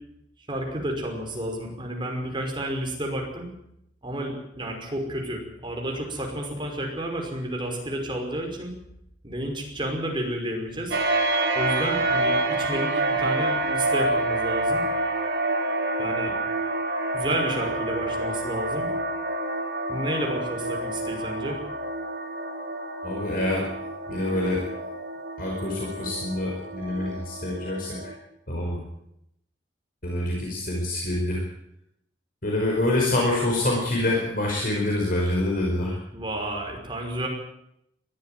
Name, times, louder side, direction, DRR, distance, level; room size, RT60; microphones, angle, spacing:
voice 1, 0.5-3.5 4.0-8.7 9.2-11.0 11.5-14.9 16.0-16.3 17.1-18.9 19.9-21.6 36.1-37.3, right 1 dB, 25° right, 1 dB, 5.5 m, -31 dB
sound 1, 10.9-28.1, right 2 dB, 70° right, 3.8 m, -28 dB
voice 2, 23.0-23.7 24.1-24.6 25.4-28.1 28.5-28.8 30.0-31.4 32.4-36.0, left 1 dB, 50° left, -1 dB, 5.1 m, -26 dB
21.5 x 14.0 x 9.4 m, 0.79 s
head